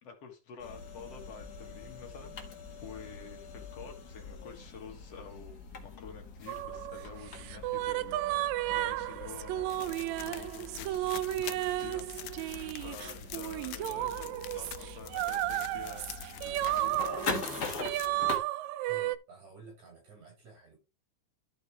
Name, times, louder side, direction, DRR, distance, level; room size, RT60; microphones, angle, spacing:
voice 1, 0.0-2.3 2.8-9.9 10.2-17.0, left 5 dB, 55° left, 2.6 m, -49 dB
sound 1, 0.6-18.4, left 4 dB, 40° left, 1.6 m, -43 dB
sound 2, 6.5-19.2, right 15 dB, 80° right, 1.7 m, -33 dB
sound 3, 9.7-18.1, left 15 dB, 75° left, 1.8 m, -46 dB
voice 2, 18.9-20.8, right 3 dB, 65° right, 7.2 m, -52 dB
12.5 x 5.2 x 3.6 m
omnidirectional pair, 3.6 m